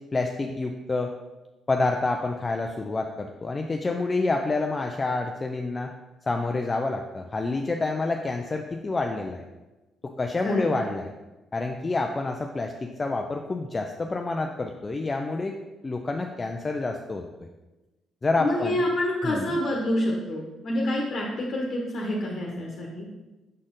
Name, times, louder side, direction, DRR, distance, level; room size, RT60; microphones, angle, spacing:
voice 1, 0.1-1.1 1.7-5.9 6.3-9.4 10.2-11.1 11.5-15.6 15.8-17.5 18.2-18.8 19.2-19.6, left 3 dB, 25° left, 3 dB, 0.4 m, -28 dB
voice 2, 18.4-23.1, left 1 dB, 60° left, -2 dB, 1.1 m, -27 dB
6.4 x 4.2 x 3.8 m, 1.1 s
cardioid pair, 90°, 0 cm